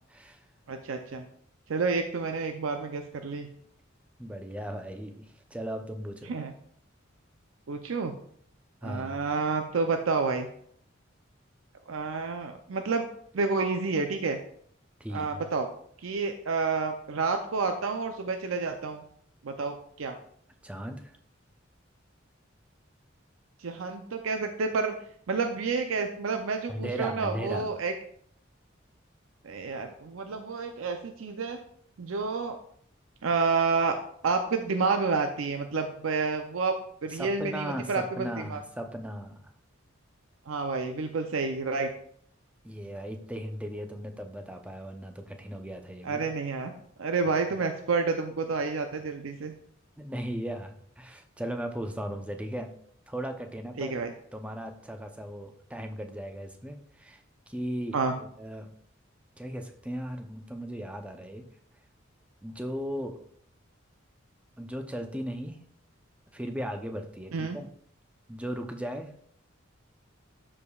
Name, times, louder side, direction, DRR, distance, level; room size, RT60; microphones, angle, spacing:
voice 1, 0.7-1.3 1.7-3.5 6.3-6.5 7.7-8.1 8.8-10.5 11.9-13.1 13.3-14.4 15.1-15.7 16.0-19.0 19.4-20.2 23.6-24.9 25.3-27.9 29.4-31.6 32.0-32.6 33.2-34.0 34.2-36.8 37.0-38.6 40.5-41.9 46.0-46.7 47.0-49.5 53.8-54.1 57.9-58.1 67.3-67.6, right 4 dB, 90° right, 5 dB, 0.5 m, -29 dB
voice 2, 4.2-5.2 5.5-6.3 8.8-9.2 15.0-15.4 20.6-21.1 26.7-27.7 37.1-39.4 42.6-46.2 50.0-52.7 53.1-54.0 54.3-58.7 59.4-61.4 62.4-63.2 64.6-65.6 66.3-67.7 68.3-69.1, equal, 5° right, 5 dB, 0.6 m, -37 dB
12.0 x 4.9 x 2.3 m, 0.64 s
head